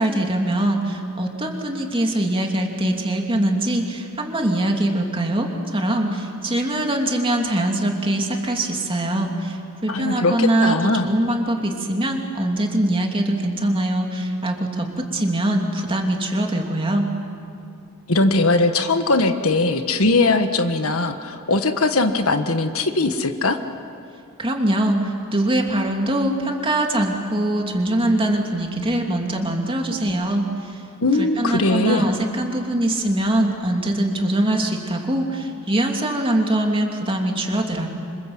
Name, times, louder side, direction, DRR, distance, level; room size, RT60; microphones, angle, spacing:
voice 1, 0.0-17.1 24.4-30.8 31.2-37.9, right 1 dB, 25° right, 2 dB, 2.7 m, -22 dB
voice 2, 9.9-11.1 18.1-23.6 31.0-32.1, left 2 dB, 70° left, 7 dB, 1.5 m, -20 dB
27.5 x 26.0 x 7.9 m, 2.5 s
head